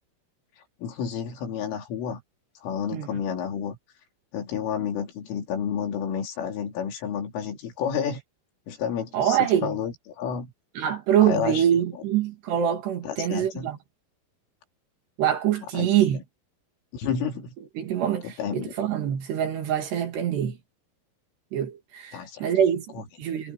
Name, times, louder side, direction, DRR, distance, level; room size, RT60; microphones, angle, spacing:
voice 1, 0.8-2.2 2.6-3.8 4.3-8.2 8.7-10.5 11.2-11.6 13.0-13.7 15.7-16.2 16.9-17.5 18.2-18.7 22.1-22.5 22.9-23.0, left 7 dB, 70° left, 5.8 m, -30 dB
voice 2, 9.1-9.8 10.8-13.8 15.2-16.2 17.8-20.6 21.5-23.5, right 10 dB, 60° right, 3.9 m, -25 dB
omnidirectional pair, 6.0 m